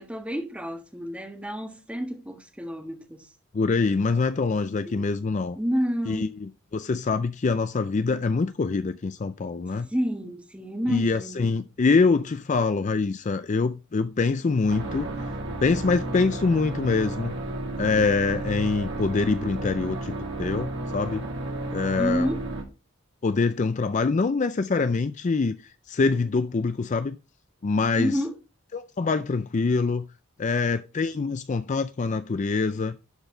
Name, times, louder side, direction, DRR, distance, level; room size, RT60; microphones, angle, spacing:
voice 1, 0.0-3.3 4.8-5.1 5.5-6.3 9.8-11.6 22.0-22.5 27.9-28.4, equal, 5° right, 1.5 m, -30 dB
voice 2, 3.5-5.6 6.1-6.3 6.7-9.9 10.9-15.1 15.6-17.4 17.8-21.3 21.7-22.3 23.2-27.2 27.6-28.2 28.7-30.1 30.4-33.0, left 4 dB, 35° left, 0.4 m, -25 dB
sound 1, 14.7-22.6, right 2 dB, 55° right, 2.4 m, -33 dB
11.5 x 4.6 x 4.4 m
head